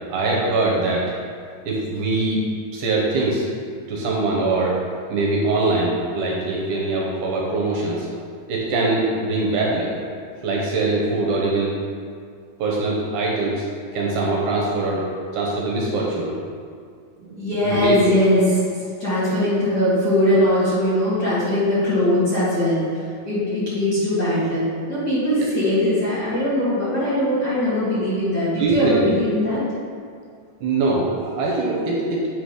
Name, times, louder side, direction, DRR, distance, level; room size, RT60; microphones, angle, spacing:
voice 1, 0.1-1.0 1.7-2.4 2.7-3.5 3.9-4.8 5.1-8.1 8.5-9.9 10.4-11.8 12.6-13.7 13.9-15.0 15.3-16.3 17.2-18.0 25.4-25.5 28.6-29.2 30.6-32.3, right 2 dB, 70° right, -3 dB, 2.3 m, -22 dB
voice 2, 17.4-29.6, left 1 dB, 40° left, -12 dB, 1.8 m, -21 dB
7.9 x 4.0 x 4.9 m, 2.2 s
omnidirectional pair, 3.9 m